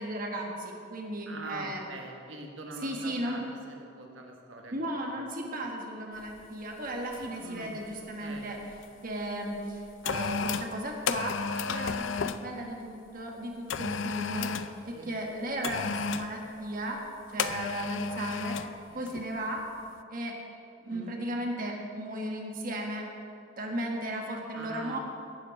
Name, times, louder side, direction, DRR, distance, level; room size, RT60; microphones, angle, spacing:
voice 1, 0.0-1.8 2.8-3.4 4.7-8.6 9.0-11.3 11.7-14.5 14.8-17.0 17.3-18.5 18.9-19.6 20.1-20.3 20.8-23.1 23.6-25.0, right 1 dB, 45° right, 0 dB, 1.5 m, -35 dB
voice 2, 1.3-4.7 5.0-5.3 7.4-7.8 8.2-8.5 14.9-15.1 17.3-17.6 18.9-19.1 20.9-21.2 24.5-25.0, right 2 dB, 80° right, 1 dB, 1.5 m, -44 dB
sound 1, 6.3-6.5 7.1-7.4 7.7-8.9 9.5-12.5 13.7-14.8 15.6-16.3 17.4-18.7 19.1-19.3, left 5 dB, 75° left, 0.5 m, -33 dB
11.5 x 6.9 x 8.7 m, 2.5 s
head